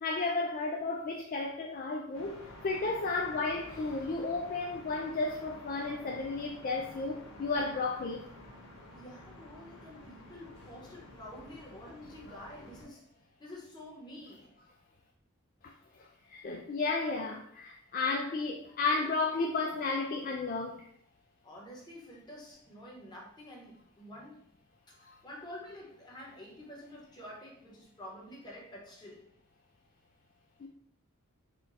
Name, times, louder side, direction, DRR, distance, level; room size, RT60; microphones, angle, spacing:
voice 1, 0.0-2.4 2.6-8.3 16.3-20.9 25.1-25.2 30.6-30.7, left 3 dB, 40° left, 1 dB, 0.3 m, -33 dB
sound 1, 2.1-12.8, left 1 dB, 70° left, 1.1 m, -51 dB
voice 2, 8.9-13.1 13.4-14.5 21.4-24.4 25.0-29.3, left 1 dB, 20° left, -4 dB, 1.0 m, -48 dB
4.4 x 2.3 x 4.0 m, 0.69 s
head